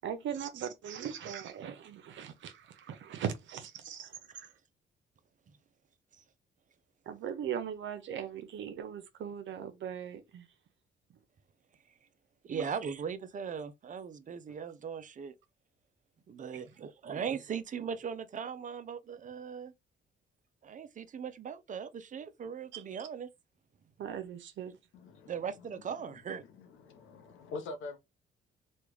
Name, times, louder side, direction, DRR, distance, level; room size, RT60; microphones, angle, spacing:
voice 1, 0.0-4.5 7.1-10.5 12.5-12.7 22.7-22.8 24.0-24.8, right 8 dB, 70° right, 0.8 m, -39 dB
voice 2, 12.4-15.3 16.3-19.7 20.6-23.3 25.3-26.4, right 7 dB, 40° right, 0.5 m, -39 dB
voice 3, 24.9-28.0, left 3 dB, 85° left, 0.9 m, -46 dB
3.2 x 2.3 x 3.1 m
cardioid pair, 90°, 20 cm